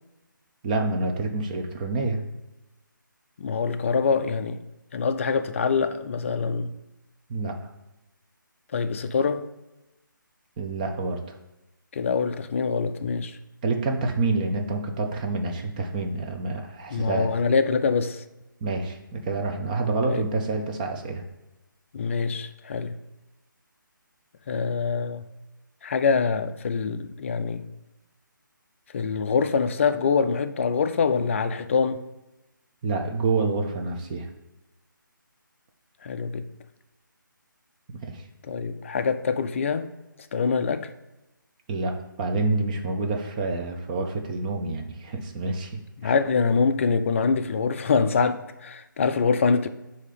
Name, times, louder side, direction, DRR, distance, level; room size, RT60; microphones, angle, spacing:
voice 1, 0.6-2.2 7.3-7.6 10.6-11.2 13.6-17.3 18.6-21.2 32.8-34.3 38.0-38.2 41.7-46.1, right 3 dB, 20° right, 0.6 m, -27 dB
voice 2, 3.4-4.6 4.9-6.7 8.7-9.4 11.9-13.4 16.9-18.2 20.1-20.3 21.9-23.0 24.5-25.3 25.8-27.6 28.9-32.0 36.0-36.4 38.4-39.9 40.3-40.9 46.0-49.7, left 5 dB, 35° left, 0.4 m, -24 dB
8.2 x 2.8 x 5.0 m
figure-of-eight pair, 155°, 11 cm